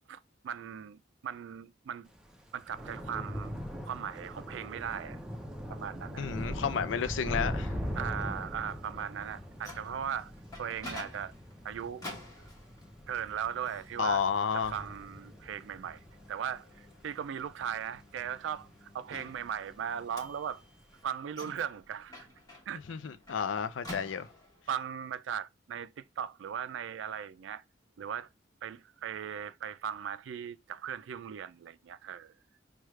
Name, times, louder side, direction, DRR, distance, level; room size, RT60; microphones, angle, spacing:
voice 1, 0.1-2.1 2.5-3.6 3.9-5.2 5.7-6.3 8.0-10.3 10.6-11.3 11.6-12.1 13.1-14.2 14.5-16.0 16.3-20.6 21.0-22.3 22.7-22.8 24.7-27.6 28.0-28.3 28.6-32.3, right 8 dB, 75° right, 0.3 m, -38 dB
Thunder / Rain, 2.2-18.7 19.1-19.5 19.8-20.0, equal, 5° right, 0.6 m, -41 dB
voice 2, 6.2-7.7 14.0-14.7 22.9-24.3, left 7 dB, 80° left, 0.4 m, -31 dB
Microwave oven, 9.3-24.7, left 1 dB, 20° left, 1.0 m, -50 dB
4.7 x 2.3 x 3.1 m
head